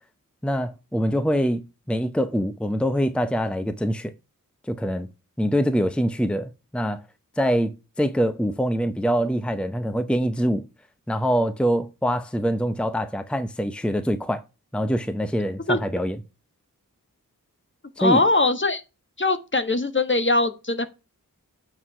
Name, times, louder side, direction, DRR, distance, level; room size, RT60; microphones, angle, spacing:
voice 1, 0.4-4.1 4.7-5.1 5.4-7.0 7.4-10.6 11.1-14.4 14.7-16.2 18.0-18.2, equal, 5° left, 0.8 m, -24 dB
voice 2, 18.0-18.8 19.2-20.9, left 2 dB, 35° left, 1.3 m, -21 dB
8.6 x 4.8 x 5.5 m
wide cardioid pair, 65°, 34 cm